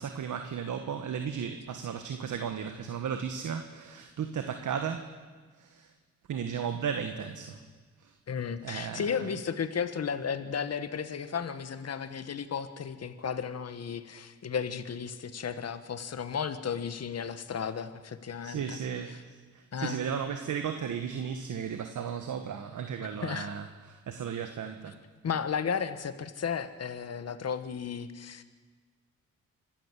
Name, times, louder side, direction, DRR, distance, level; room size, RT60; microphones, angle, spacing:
voice 1, 0.0-5.2 5.6-5.9 6.3-7.6 8.0-8.1 8.6-9.3 18.4-25.0, right 7 dB, 75° right, 7 dB, 1.4 m, -35 dB
voice 2, 8.3-18.8 19.7-20.0 23.2-23.5 25.2-28.4, left 7 dB, 55° left, 11 dB, 1.4 m, -34 dB
26.0 x 12.5 x 8.3 m, 1.4 s
cardioid pair, 80°, 31 cm